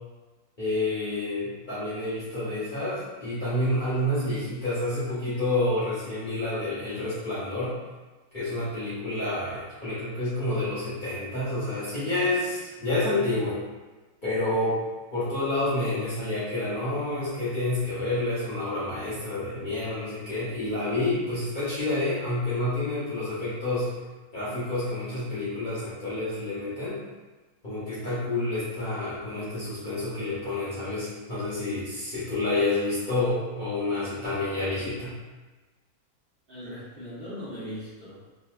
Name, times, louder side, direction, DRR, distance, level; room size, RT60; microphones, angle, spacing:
voice 1, 0.6-7.8 8.3-13.6 14.2-14.8 15.1-23.9 24.3-27.0 27.6-35.2, left 2 dB, 40° left, -12 dB, 0.9 m, -29 dB
voice 2, 36.5-38.4, equal, 45° right, -11 dB, 1.2 m, -39 dB
3.3 x 2.3 x 2.3 m, 1.2 s
omnidirectional pair, 1.5 m